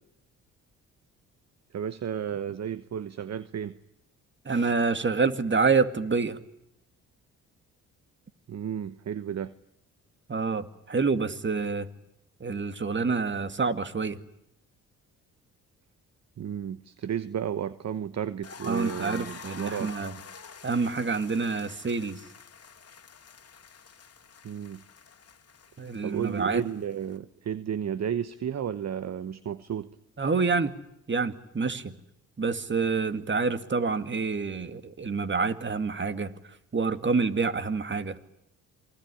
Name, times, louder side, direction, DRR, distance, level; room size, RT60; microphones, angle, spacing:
voice 1, 1.7-3.8 8.5-9.5 16.4-19.9 24.4-24.8 26.0-29.9, right 9 dB, 50° right, 15 dB, 1.0 m, -33 dB
voice 2, 4.5-6.4 10.3-11.9 12.4-14.2 18.6-20.2 20.6-22.2 25.8-26.6 30.2-30.7 31.1-31.9 32.4-36.3 36.7-38.2, right 4 dB, 35° right, 11 dB, 2.2 m, -27 dB
sound 1, 18.4-27.2, left 6 dB, 45° left, 2.3 m, -47 dB
27.5 x 20.5 x 10.0 m, 0.78 s
supercardioid pair, 60°, 34 cm